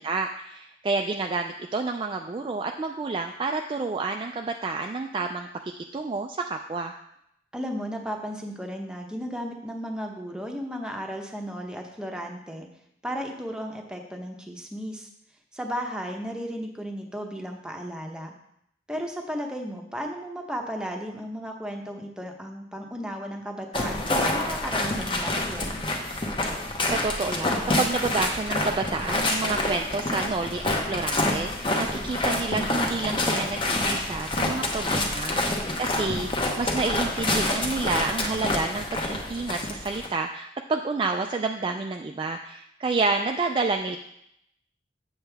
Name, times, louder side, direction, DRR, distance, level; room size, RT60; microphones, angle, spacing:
voice 1, 0.0-6.9 26.8-44.0, right 3 dB, 25° right, 4 dB, 0.3 m, -29 dB
voice 2, 7.5-12.7 13.0-15.1 15.5-18.3 18.9-25.8 35.0-35.6, equal, 5° right, 2 dB, 0.8 m, -35 dB
sound 1, 23.7-40.1, left 2 dB, 25° left, 1.0 m, -27 dB
8.0 x 7.5 x 3.4 m, 0.77 s
head